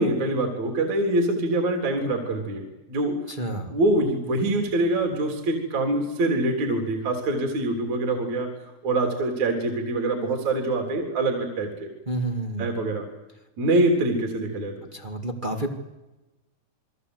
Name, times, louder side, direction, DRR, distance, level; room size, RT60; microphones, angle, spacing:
voice 1, 0.0-3.2 3.7-8.5 8.8-11.9 12.6-13.1 13.6-14.7, right 2 dB, 45° right, 2 dB, 4.4 m, -24 dB
voice 2, 3.3-3.7 12.0-12.7 14.9-15.7, right 2 dB, 20° right, 3 dB, 1.2 m, -29 dB
29.5 x 22.5 x 8.0 m, 1.0 s
omnidirectional pair, 4.9 m